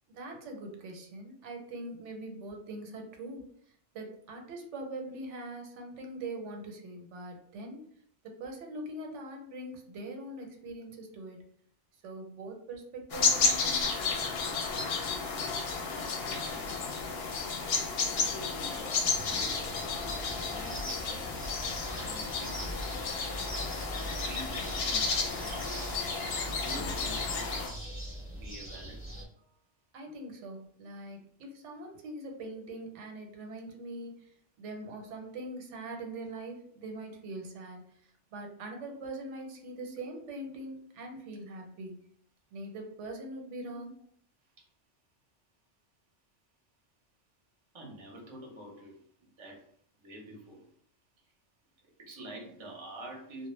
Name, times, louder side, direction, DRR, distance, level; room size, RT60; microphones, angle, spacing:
voice 1, 0.1-3.5 3.9-7.9 8.2-11.4 12.0-13.8 29.9-34.3 34.6-37.8 38.3-41.9 42.5-43.9, right 2 dB, 90° right, 2 dB, 0.9 m, -42 dB
sound 1, 13.1-27.7, left 4 dB, 65° left, 0.7 m, -32 dB
voice 2, 15.9-16.9 17.3-17.4 17.7-19.4 20.2-21.5 22.0-22.8 23.2-25.7 26.3-27.7 28.4-29.1 29.4-29.5 39.9-40.0 41.1-41.3 43.7-43.9 47.7-49.0 49.4-49.7 50.0-50.6 52.0-53.5, right 1 dB, 35° right, 0 dB, 0.5 m, -47 dB
sound 2, 19.0-29.2, right 1 dB, 15° left, 0.6 m, -41 dB
2.2 x 2.1 x 3.0 m, 0.63 s
omnidirectional pair, 1.2 m